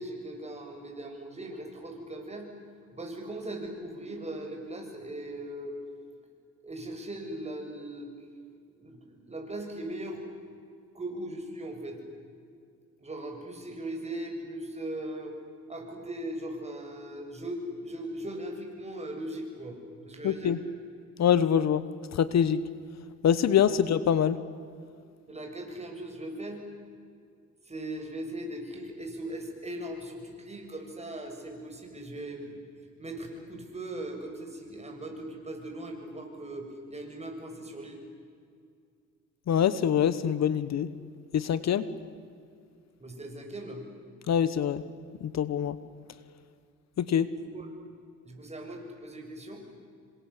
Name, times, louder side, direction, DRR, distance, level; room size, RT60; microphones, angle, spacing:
voice 1, 0.0-2.5 2.9-5.7 6.6-8.1 8.8-10.3 10.9-12.0 13.0-15.3 15.7-19.8 20.1-20.5 23.7-23.8 25.3-26.6 27.6-32.6 33.0-38.0 43.0-43.8 47.3-47.7 48.2-49.6, right 1 dB, 20° right, 2 dB, 7.2 m, -39 dB
voice 2, 20.2-20.6 21.2-21.8 22.1-22.6 23.2-24.4 39.5-40.9 41.3-41.8 44.3-44.8 45.3-45.8 47.0-47.3, left 9 dB, 60° left, 15 dB, 1.2 m, -24 dB
27.5 x 25.5 x 8.4 m, 2.3 s
cardioid pair, 90°, 30 cm